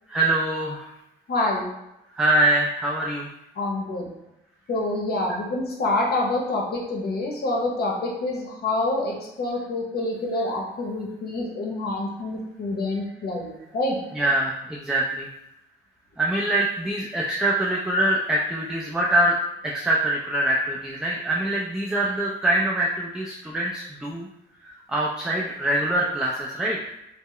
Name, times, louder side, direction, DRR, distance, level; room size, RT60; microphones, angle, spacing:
voice 1, 0.1-0.9 2.1-3.3 14.1-15.3 16.2-19.4 19.6-24.3 24.6-26.9, right 1 dB, 5° right, -3 dB, 0.3 m, -24 dB
voice 2, 1.3-1.7 3.6-4.1 4.7-14.0, left 2 dB, 50° left, -1 dB, 0.8 m, -27 dB
2.1 x 2.0 x 3.7 m, 0.88 s
cardioid pair, 90°, 20 cm